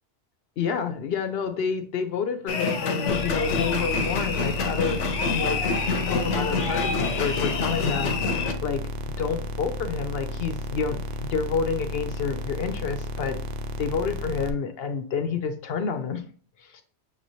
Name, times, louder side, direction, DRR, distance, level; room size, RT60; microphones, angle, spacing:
voice 1, 0.6-5.0 5.3-5.6 5.9-8.8 9.2-13.4 13.8-16.2 16.6-16.8, left 6 dB, 65° left, 8 dB, 0.7 m, -29 dB
sound 1, 2.5-8.5, left 4 dB, 85° left, 1.0 m, -26 dB
sound 2, 3.1-14.5, left 1 dB, 60° right, 0.4 m, -33 dB
6.5 x 3.1 x 2.7 m, 0.43 s
omnidirectional pair, 1.2 m